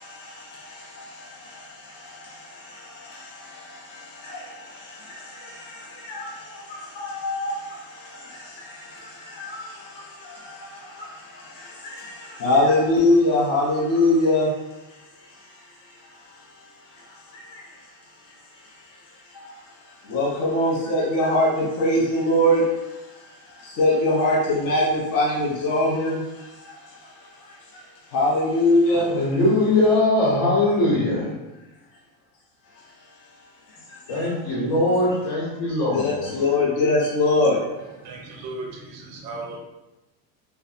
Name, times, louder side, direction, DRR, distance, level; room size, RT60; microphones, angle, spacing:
voice 1, 0.0-17.9 18.2-29.1 33.7-34.2 35.9-38.0, left 1 dB, 40° left, 0.6 m, -25 dB
voice 2, 28.9-31.4 34.1-36.4, left 2 dB, 60° left, 1.3 m, -21 dB
voice 3, 38.0-39.6, right 2 dB, 35° right, 0.5 m, -36 dB
2.6 x 2.1 x 2.4 m
cardioid pair, 150°, 49 cm